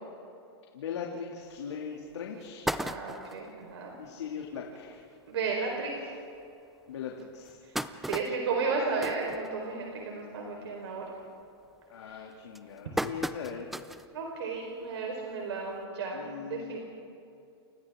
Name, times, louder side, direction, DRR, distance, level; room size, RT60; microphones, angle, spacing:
voice 1, 0.7-2.6 4.0-5.0 6.9-7.5 7.8-8.1 11.9-13.7 16.1-16.8, left 7 dB, 85° left, -1 dB, 2.6 m, -40 dB
sound 1, 1.5-1.6 2.1-2.2 2.4-3.5 4.0-4.1 4.4-4.5 4.8-5.0 5.7-5.8 6.4-6.5 7.2-10.0 10.4-10.7 11.1-11.5 12.1-14.1 14.6-14.7 15.8-15.9, right 1 dB, ahead, 0.5 m, -36 dB
voice 2, 2.8-3.9 5.3-6.1 8.1-11.0 12.1-12.2 14.1-16.8, right 4 dB, 75° right, -1 dB, 4.3 m, -33 dB
30.0 x 29.0 x 3.7 m, 2.6 s
hypercardioid pair, 150°, 14 cm